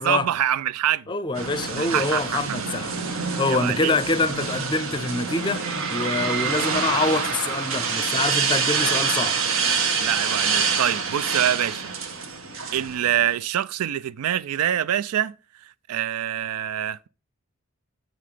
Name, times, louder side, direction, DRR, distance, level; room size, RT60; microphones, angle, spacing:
voice 1, 0.0-1.1 1.8-2.8 3.5-4.0 10.0-11.9 12.7-15.3 15.9-17.1, right 10 dB, 90° right, 0.4 m, -25 dB
voice 2, 1.1-2.9 3.4-5.6 5.9-9.4, left 3 dB, 20° left, 0.5 m, -25 dB
sound 1, 1.3-13.3, right 5 dB, 70° right, 1.1 m, -26 dB
8.4 x 5.6 x 4.9 m
head